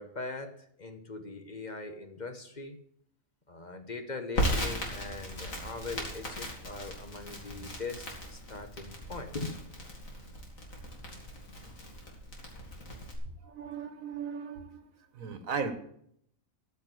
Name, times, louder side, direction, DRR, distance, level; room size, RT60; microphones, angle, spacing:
voice 1, 0.0-2.8 3.5-8.1 8.3-9.6, left 3 dB, 35° left, 7 dB, 1.1 m, -41 dB
Crackle, 4.4-13.2, equal, 85° left, 3.1 m, -37 dB
voice 2, 13.4-14.9 15.1-15.7, right 6 dB, 80° right, 9 dB, 1.6 m, -36 dB
13.5 x 6.0 x 7.8 m, 0.69 s
omnidirectional pair, 1.4 m